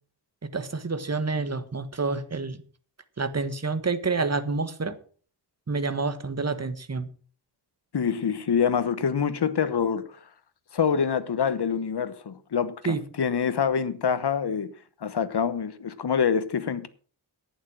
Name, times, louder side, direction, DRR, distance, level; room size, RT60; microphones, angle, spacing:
voice 1, 0.5-2.6 3.2-4.9 5.7-7.1 12.8-13.0, right 4 dB, 35° right, 1.4 m, -28 dB
voice 2, 7.9-10.1 10.7-14.7 15.0-16.9, left 7 dB, 65° left, 1.1 m, -26 dB
11.0 x 9.1 x 6.3 m
wide cardioid pair, 90°, 44 cm